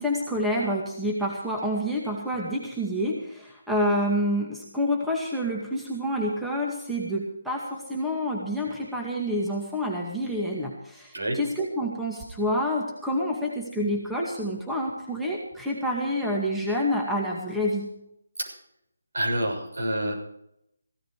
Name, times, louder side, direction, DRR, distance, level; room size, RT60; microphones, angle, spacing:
voice 1, 0.0-17.9, equal, ahead, -3 dB, 2.2 m, -28 dB
voice 2, 19.1-20.1, right 1 dB, 75° right, 1 dB, 6.9 m, -27 dB
16.0 x 13.5 x 4.9 m, 0.79 s
figure-of-eight pair, 160°, 0 cm